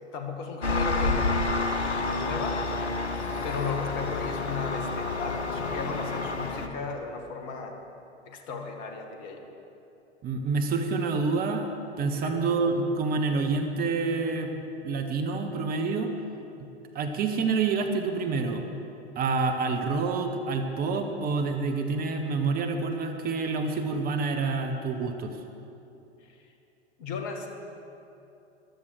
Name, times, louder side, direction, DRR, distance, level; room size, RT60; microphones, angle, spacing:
voice 1, 0.0-1.6 2.0-2.6 3.4-7.8 8.3-9.5 12.1-12.4 26.3-26.4 27.0-27.5, left 4 dB, 45° left, 4 dB, 1.9 m, -35 dB
Engine, 0.6-6.7, left 3 dB, 70° left, 1.2 m, -29 dB
voice 2, 10.2-11.7 12.0-14.5 14.8-16.1 16.9-18.6 19.2-25.4, right 4 dB, 25° right, 5 dB, 1.1 m, -27 dB
14.5 x 12.5 x 6.4 m, 2.8 s
figure-of-eight pair, 90°, 34 cm